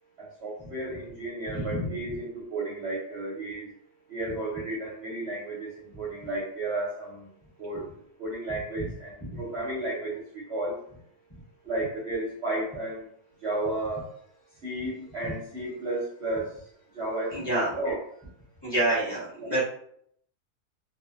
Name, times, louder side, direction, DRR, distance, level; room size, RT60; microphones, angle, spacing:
voice 1, 0.2-3.7 4.1-5.7 6.0-7.3 7.6-7.8 8.2-9.1 9.4-10.8 11.7-13.0 13.4-14.0 14.6-16.5 16.9-18.0 19.4-19.6, right 2 dB, 55° right, -7 dB, 0.8 m, -33 dB
voice 2, 17.3-17.7 18.6-19.6, right 1 dB, 20° left, -10 dB, 1.1 m, -26 dB
2.6 x 2.3 x 2.4 m, 0.65 s
omnidirectional pair, 1.7 m